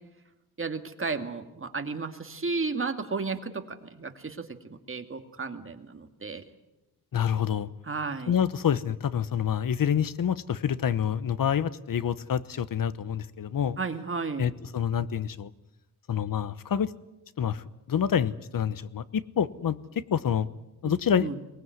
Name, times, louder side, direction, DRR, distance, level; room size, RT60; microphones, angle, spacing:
voice 1, 0.6-6.4 7.8-8.4 13.8-14.5 20.8-21.4, right 4 dB, 35° right, 6 dB, 2.3 m, -33 dB
voice 2, 7.1-7.7 8.3-13.8 14.4-15.5 16.1-16.9 17.4-20.5 20.8-21.3, left 8 dB, 60° left, 17 dB, 1.1 m, -27 dB
23.5 x 19.5 x 9.5 m, 0.97 s
cardioid pair, 95°, 38 cm